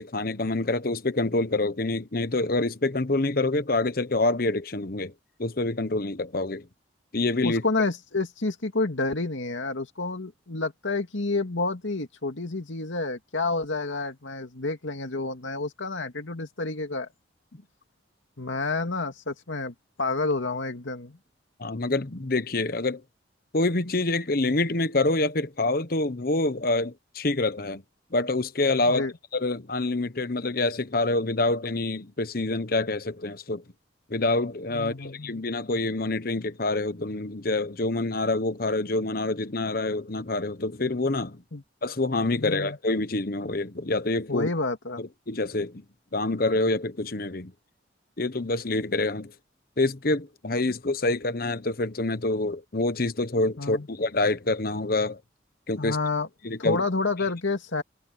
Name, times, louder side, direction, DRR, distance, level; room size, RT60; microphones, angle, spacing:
voice 1, 0.0-5.1 5.4-6.7 7.1-7.6 21.6-23.0 23.5-27.8 28.1-33.6 34.1-41.4 41.8-44.5 45.0-45.8 46.1-47.5 48.2-49.3 49.8-55.2 55.7-56.0 56.4-56.8, left 2 dB, 50° left, 1.1 m, -26 dB
voice 2, 7.4-17.1 18.4-21.2 28.9-29.1 34.7-35.3 41.5-41.6 42.4-42.8 44.3-45.0 53.6-53.9 55.8-56.3 56.6-57.8, left 3 dB, 90° left, 2.3 m, -29 dB
head